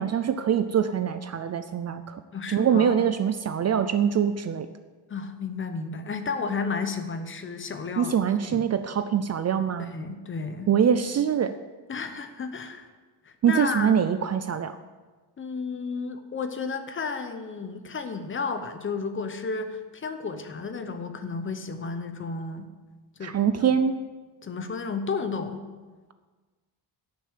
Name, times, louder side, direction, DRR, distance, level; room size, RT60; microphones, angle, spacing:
voice 1, 0.0-2.2 2.5-4.7 8.0-9.9 10.7-11.5 13.4-14.7 23.2-24.0, right 8 dB, 40° right, 10 dB, 0.4 m, -24 dB
voice 2, 2.3-3.1 5.1-8.1 8.5-8.7 9.8-10.7 11.9-12.9 13.2-13.9 15.4-22.7 23.2-23.4 23.7-23.8 24.4-25.6, left 4 dB, 30° left, 8 dB, 0.8 m, -32 dB
11.0 x 6.7 x 7.9 m, 1.3 s
cardioid pair, 175°, 42 cm